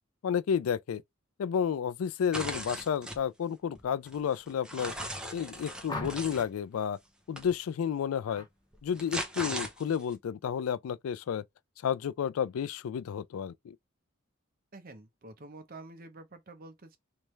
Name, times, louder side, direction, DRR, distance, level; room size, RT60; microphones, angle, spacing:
voice 1, 0.2-1.0 1.4-4.9 5.3-7.0 7.3-8.5 8.8-11.4 11.8-13.8, left 7 dB, 90° left, 0.3 m, -31 dB
sound 1, 2.3-3.2 3.8-6.5 7.4-7.5 8.7-10.1, equal, 5° right, 0.7 m, -38 dB
sound 2, 5.9-6.5 8.2-8.5 8.9-9.3, left 2 dB, 20° left, 1.0 m, -40 dB
voice 2, 14.7-17.0, right 2 dB, 45° right, 0.8 m, -48 dB
3.3 x 3.2 x 3.1 m
head